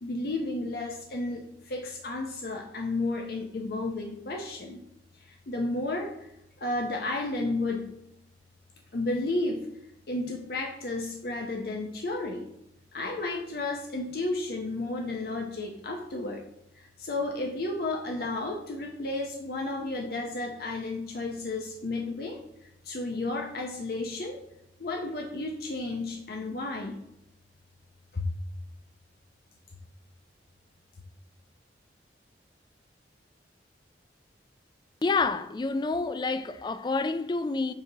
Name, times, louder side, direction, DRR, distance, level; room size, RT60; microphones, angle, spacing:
voice 1, 0.0-4.8 5.1-6.3 6.6-7.9 8.9-9.7 10.1-12.5 12.9-16.4 16.7-24.4 24.8-27.0 28.1-28.4, left 2 dB, 55° left, 0.7 m, -32 dB
voice 2, 35.0-37.7, left 3 dB, 25° left, 0.3 m, -28 dB
7.8 x 2.8 x 6.0 m
head